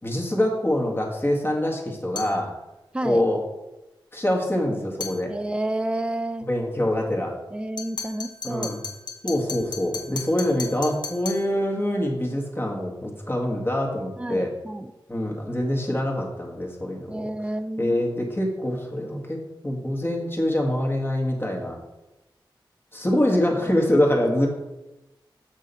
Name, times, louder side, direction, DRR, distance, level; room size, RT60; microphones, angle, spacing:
voice 1, 0.0-2.5 3.0-3.4 4.1-5.3 6.5-7.3 8.4-8.8 9.2-14.5 15.1-17.3 17.8-19.4 19.6-21.8 22.9-24.5, left 1 dB, 25° left, 0 dB, 1.7 m, -25 dB
sound 1, 2.1-2.4 5.0-5.2 7.8-11.5, left 4 dB, 55° left, 1.3 m, -35 dB
voice 2, 5.3-6.5 7.5-8.7 14.2-14.9 17.1-18.0, right 1 dB, 10° right, 10 dB, 0.4 m, -30 dB
6.6 x 6.3 x 4.2 m, 1.0 s
wide cardioid pair, 65°, 9 cm